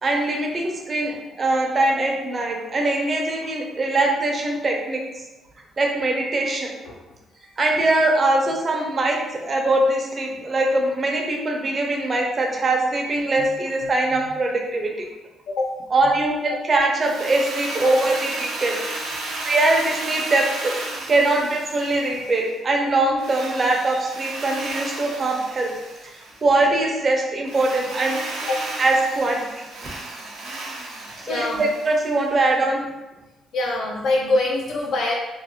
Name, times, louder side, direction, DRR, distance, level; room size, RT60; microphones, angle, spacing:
voice 1, 0.0-5.0 5.8-6.7 7.6-15.1 15.9-18.8 19.4-20.7 21.1-25.7 26.4-28.2 28.8-29.5 31.2-32.8, right 2 dB, 40° right, 1 dB, 0.5 m, -22 dB
Drill, 17.0-22.5 23.2-26.5 27.4-32.2, right 2 dB, 85° right, 0.5 m, -34 dB
voice 2, 31.3-31.6 33.5-35.1, left 2 dB, 80° left, -2 dB, 0.3 m, -24 dB
2.4 x 2.0 x 2.8 m, 1.0 s
cardioid pair, 90°, 0 cm